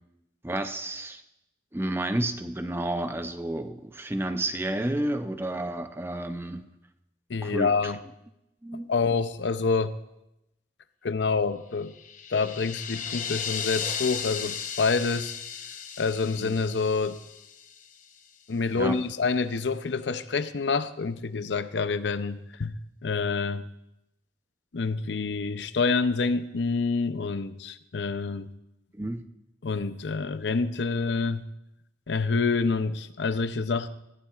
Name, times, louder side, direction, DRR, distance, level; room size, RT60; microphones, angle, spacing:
voice 1, 0.4-1.2 1.7-6.6 7.4-7.9 8.6-8.9 16.4-16.5 18.7-19.0 28.9-29.2, right 1 dB, 15° right, 8 dB, 0.6 m, -31 dB
voice 2, 7.3-8.0 8.9-9.9 11.0-11.9 12.3-15.4 16.0-17.2 18.5-22.8 23.0-23.6 24.7-28.5 29.6-31.4 32.1-33.9, left 4 dB, 80° left, 12 dB, 0.6 m, -27 dB
sound 1, 11.8-18.0, left 7 dB, 45° left, 0.8 m, -36 dB
18.5 x 14.5 x 2.4 m, 0.86 s
head